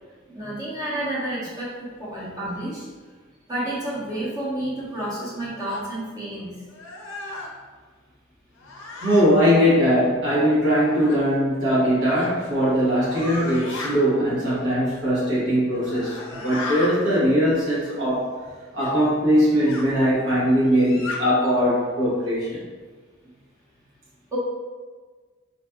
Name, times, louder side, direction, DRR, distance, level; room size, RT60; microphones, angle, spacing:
voice 1, 0.3-2.9 3.5-6.5 24.3-24.4, right 1 dB, 20° right, -8 dB, 1.0 m, -30 dB
sound 1, 5.6-5.8 6.7-7.5 8.6-9.3 11.0-11.2 12.1-12.3 13.0-13.9 15.7-16.9 18.8-18.9 19.7-19.9 20.7-21.2, left 2 dB, 75° left, 0.5 m, -34 dB
voice 2, 9.0-18.3 18.7-22.6, equal, 65° right, -8 dB, 1.0 m, -20 dB
4.1 x 2.4 x 2.2 m, 1.4 s
head